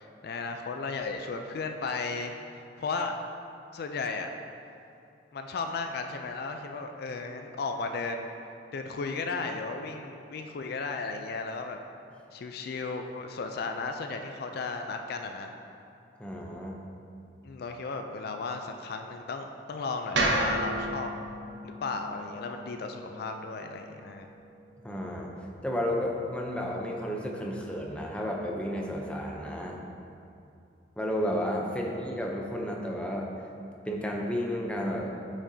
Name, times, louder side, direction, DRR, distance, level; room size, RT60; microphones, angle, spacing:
voice 1, 0.0-3.2 3.7-4.3 5.3-8.3 8.7-11.8 12.3-15.5 17.4-21.1 21.6-24.3, left 4 dB, 55° left, 5 dB, 0.3 m, -35 dB
voice 2, 16.2-16.8 24.8-25.3 25.6-29.8 31.0-33.3 33.8-35.1, equal, 5° left, -1 dB, 0.5 m, -32 dB
sound 1, 20.1-24.3, right 1 dB, 75° right, 0.8 m, -32 dB
8.6 x 5.1 x 2.7 m, 2.6 s
head